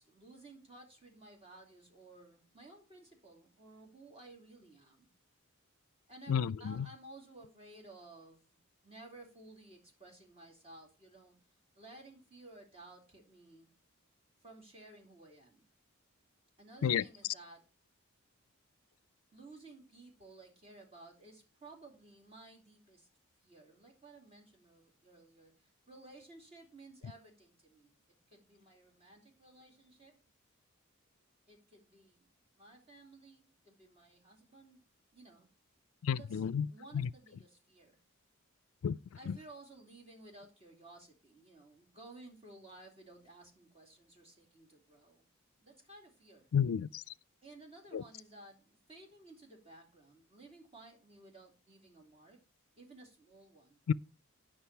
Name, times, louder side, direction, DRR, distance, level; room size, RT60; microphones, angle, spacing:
voice 1, 0.0-5.1 6.1-8.6 8.8-11.3 11.7-13.7 14.4-15.7 16.6-17.7 19.3-23.1 23.4-30.2 31.5-32.3 32.5-34.9 35.1-35.5 36.1-38.0 39.2-45.2 45.6-46.5 47.4-52.4 52.8-53.8, right 2 dB, 25° right, 2.7 m, -56 dB
voice 2, 6.3-6.8 16.8-17.0 36.0-36.7 36.9-37.1 38.8-39.0 39.3-39.4 46.5-47.0 47.9-48.0 53.9-54.0, left 7 dB, 75° left, 0.4 m, -31 dB
10.0 x 6.1 x 4.5 m
head